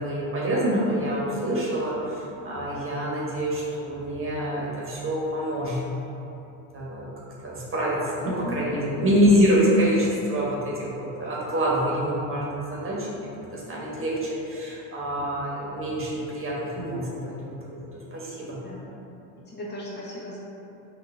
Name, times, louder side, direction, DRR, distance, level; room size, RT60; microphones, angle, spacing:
voice 1, 0.0-5.8 6.7-7.1 7.4-18.6, equal, 30° right, -5 dB, 1.3 m, -26 dB
voice 2, 8.2-9.1 18.6-19.0 19.4-20.4, left 2 dB, 25° left, -6 dB, 1.0 m, -37 dB
5.7 x 2.7 x 3.3 m, 2.9 s
hypercardioid pair, 85°, 41 cm